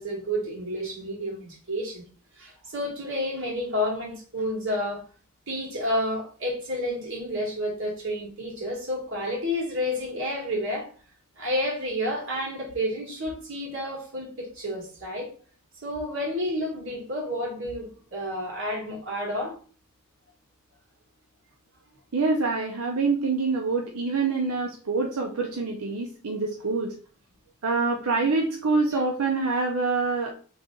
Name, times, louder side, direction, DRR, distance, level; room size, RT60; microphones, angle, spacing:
voice 1, 0.0-2.0 2.4-5.0 5.5-10.9 11.4-15.3 15.8-19.5 28.9-29.0, equal, 60° right, 1.8 m, -30 dB
voice 2, 22.1-26.9 27.6-30.3, right 3 dB, 90° right, 0.6 m, -26 dB
3.3 x 2.6 x 3.7 m
head